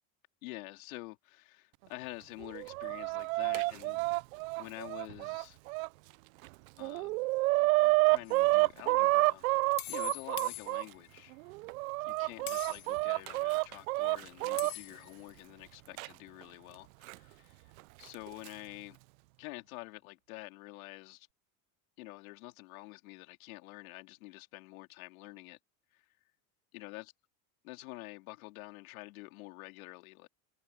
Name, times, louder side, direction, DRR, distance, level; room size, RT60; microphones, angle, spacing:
voice 1, 0.4-4.0 4.6-5.6 6.8-7.2 8.1-9.5 9.9-11.4 12.0-17.6 18.0-19.0 19.4-21.3 22.0-25.6 25.9-26.1 26.7-27.1 27.6-30.3, left 22 dB, 80° left, 3.5 m, -48 dB
Chicken rooster, 2.4-5.9 6.4-6.5 6.8-10.8 11.5-14.7 16.0-16.1 17.1-17.2 18.1-18.5, right 24 dB, 80° right, 0.6 m, -29 dB
sound 1, 8.3-8.4 9.8-11.2 12.5-13.1 14.6-15.3, left 21 dB, 65° left, 2.6 m, -44 dB
supercardioid pair, 115°, 41 cm